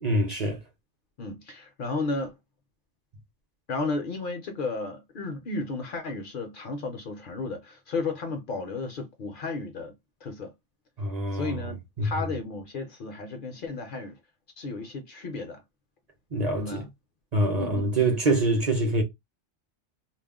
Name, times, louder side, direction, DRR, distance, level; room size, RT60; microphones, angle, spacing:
voice 1, 0.0-0.6 11.0-12.1 16.3-16.9 17.3-19.0, right 2 dB, 45° right, 0.6 m, -25 dB
voice 2, 1.2-2.4 3.7-9.9 10.2-10.5 11.3-14.2 14.6-15.6 16.5-16.9 17.6-17.9, left 3 dB, 60° left, 0.6 m, -33 dB
2.3 x 2.0 x 3.4 m
omnidirectional pair, 1.2 m